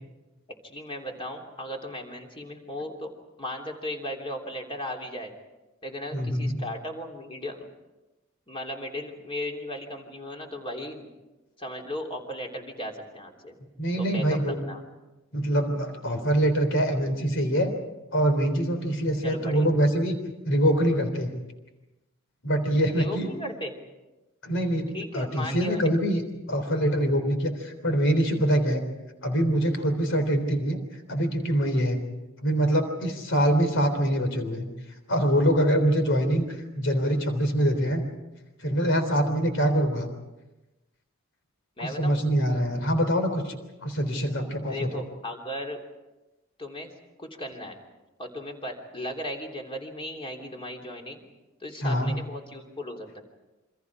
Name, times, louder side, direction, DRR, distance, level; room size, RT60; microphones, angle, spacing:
voice 1, 0.6-3.1 3.4-5.3 5.8-7.7 8.5-11.1 11.6-13.6 14.0-14.8 19.2-19.7 22.9-23.7 24.9-25.9 41.8-42.2 44.7-45.8 46.6-46.9 47.2-47.8 48.2-51.2 51.6-53.2, left 1 dB, 25° left, 2 dB, 3.3 m, -36 dB
voice 2, 6.1-6.6 13.8-14.6 15.3-17.7 18.1-20.2 20.5-21.3 22.4-23.3 24.4-26.2 26.5-28.8 29.2-30.8 31.1-32.0 32.4-34.7 35.1-36.5 36.8-38.0 38.6-40.1 41.8-43.5 43.8-45.0 51.8-52.1, equal, 65° left, 7 dB, 3.5 m, -24 dB
28.0 x 25.5 x 4.9 m, 1.0 s
head